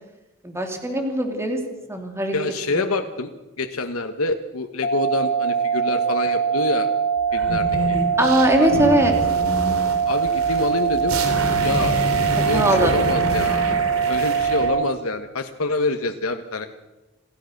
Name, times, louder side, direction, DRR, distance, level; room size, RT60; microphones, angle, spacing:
voice 1, 0.4-1.6 1.9-2.3 8.2-9.1 12.5-12.9, right 1 dB, 15° right, 3 dB, 3.0 m, -20 dB
voice 2, 2.3-3.3 3.6-6.9 7.3-8.0 8.5-8.7 10.0-11.2 11.6-12.0 12.4-16.7, left 3 dB, 85° left, 6 dB, 1.3 m, -26 dB
sound 1, 4.8-14.8, right 6 dB, 45° left, 2.3 m, -22 dB
sound 2, 7.3-14.7, right 1 dB, 85° right, 3.3 m, -27 dB
27.5 x 15.5 x 6.6 m, 1.1 s
head